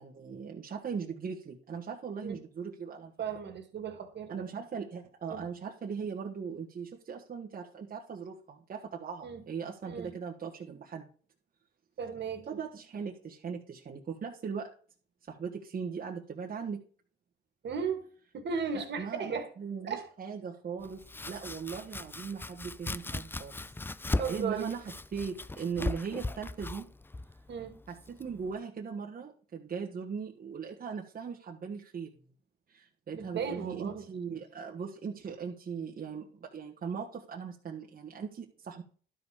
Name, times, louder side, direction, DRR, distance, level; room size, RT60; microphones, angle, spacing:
voice 1, 0.0-3.1 4.3-11.1 12.5-14.7 15.3-16.8 18.7-23.6 24.3-26.8 27.9-32.1 32.7-38.8, right 6 dB, 45° right, 1.5 m, -39 dB
voice 2, 3.2-4.5 5.3-5.4 9.2-9.5 9.9-10.1 12.0-12.5 17.6-18.0 18.3-19.5 19.9-20.1 24.2-24.7 27.5-27.8 33.1-34.0, right 6 dB, 60° right, 2.2 m, -36 dB
Domestic sounds home sounds, 20.8-28.5, left 2 dB, 10° left, 0.4 m, -38 dB
12.0 x 5.5 x 5.0 m
cardioid pair, 90°, 20 cm